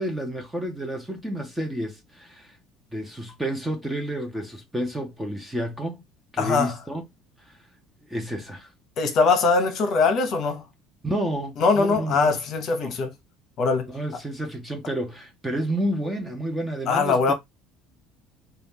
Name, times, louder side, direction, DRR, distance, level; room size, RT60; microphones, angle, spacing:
voice 1, 0.0-2.6 2.9-6.0 6.3-7.0 7.4-7.6 8.1-8.7 11.0-12.4 12.8-13.0 13.9-17.3, right 1 dB, 5° right, 0.5 m, -30 dB
voice 2, 6.4-6.7 9.0-10.6 11.6-13.1 13.6-13.9 16.9-17.3, left 4 dB, 40° left, 0.8 m, -21 dB
4.2 x 2.3 x 3.4 m
cardioid pair, 170°, 0 cm